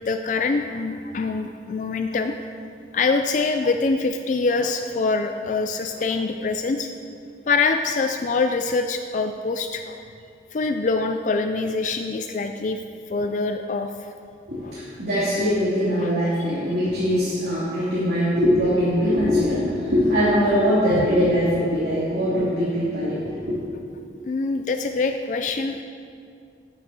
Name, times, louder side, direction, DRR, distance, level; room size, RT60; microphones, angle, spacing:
voice 1, 0.1-2.4 2.9-6.9 7.5-10.0 10.5-12.8 13.1-13.9 14.6-14.7 16.0-16.1 21.0-21.1 24.3-25.8, left 4 dB, 45° left, 6 dB, 0.3 m, -24 dB
voice 2, 14.5-23.6, equal, 65° right, -11 dB, 2.4 m, -22 dB
10.5 x 9.2 x 4.1 m, 2.4 s
head